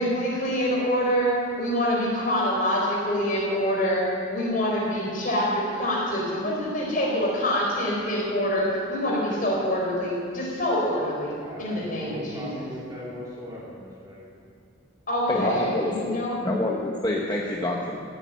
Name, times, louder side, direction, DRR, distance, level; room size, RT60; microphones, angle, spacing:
voice 1, 0.0-12.7 15.1-16.4, equal, 40° left, -3 dB, 4.9 m, -26 dB
voice 2, 11.4-14.3, equal, 20° right, -7 dB, 2.5 m, -39 dB
voice 3, 15.3-18.0, left 1 dB, 20° left, -2 dB, 1.2 m, -27 dB
16.0 x 8.9 x 9.6 m, 2.5 s
head